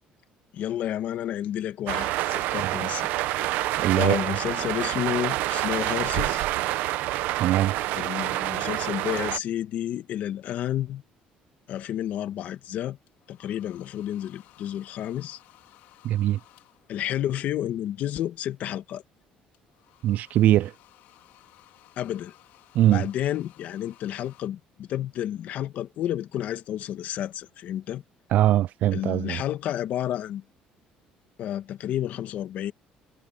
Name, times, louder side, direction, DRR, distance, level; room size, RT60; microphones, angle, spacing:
voice 1, 0.5-3.1 3.9-6.5 7.9-11.0 11.7-13.0 13.3-15.4 16.9-19.0 22.0-22.3 22.8-28.0 28.9-30.4 31.4-32.7, left 11 dB, 60° left, 1.7 m, -31 dB
sound 1, 1.9-9.4, right 16 dB, 85° right, 1.0 m, -27 dB
voice 2, 3.8-4.3 7.4-7.7 16.0-16.4 20.0-20.7 22.7-23.1 28.3-29.4, right 13 dB, 60° right, 0.4 m, -21 dB
sound 2, 13.1-17.1 19.5-24.5, left 16 dB, 85° left, 4.1 m, -57 dB
cardioid pair, 135°, 3 cm